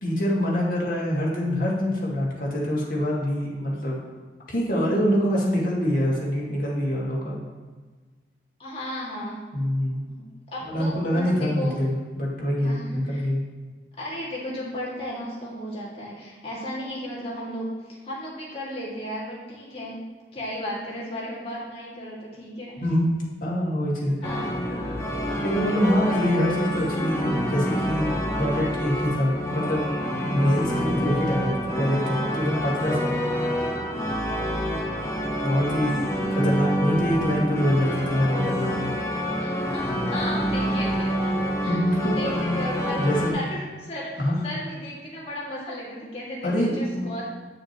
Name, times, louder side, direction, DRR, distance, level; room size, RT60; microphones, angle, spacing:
voice 1, 0.0-4.0 4.5-7.4 9.5-10.0 10.7-13.4 22.8-24.2 24.8-25.0 25.3-28.1 28.4-33.8 35.4-38.9 41.7-42.3 42.9-43.3 44.2-44.4 46.4-47.2, equal, 55° left, -4 dB, 1.9 m, -25 dB
voice 2, 8.6-9.4 10.1-10.2 10.5-11.7 12.6-13.3 14.0-20.0 20.3-22.8 24.2-24.5 39.4-41.3 41.6-43.0 43.3-47.2, equal, 35° left, -6 dB, 2.1 m, -35 dB
sound 1, 24.2-43.3, equal, 15° left, 0.8 m, -27 dB
9.2 x 6.4 x 3.0 m, 1.4 s
head